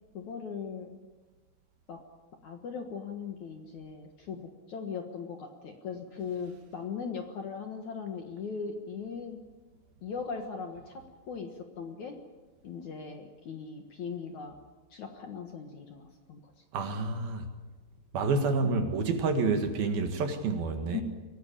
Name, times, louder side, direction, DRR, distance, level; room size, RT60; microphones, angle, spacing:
voice 1, 0.1-1.0 1.9-2.0 2.4-9.4 10.0-12.2 12.6-14.6 14.9-16.6 18.6-18.8 20.9-21.0, left 6 dB, 60° left, 2.3 m, -39 dB
voice 2, 16.7-17.5 18.1-21.0, right 4 dB, 65° right, 3.4 m, -28 dB
23.5 x 18.0 x 8.7 m
omnidirectional pair, 5.0 m